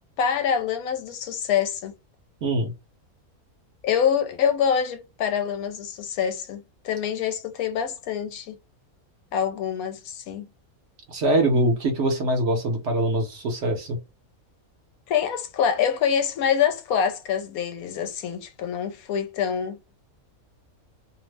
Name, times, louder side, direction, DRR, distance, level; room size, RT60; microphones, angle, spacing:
voice 1, 0.2-1.9 3.8-8.5 9.3-10.5 15.1-19.8, left 8 dB, 85° left, 1.1 m, -25 dB
voice 2, 2.4-2.7 11.1-14.0, right 1 dB, 60° right, 0.9 m, -23 dB
2.7 x 2.0 x 3.2 m
omnidirectional pair, 1.5 m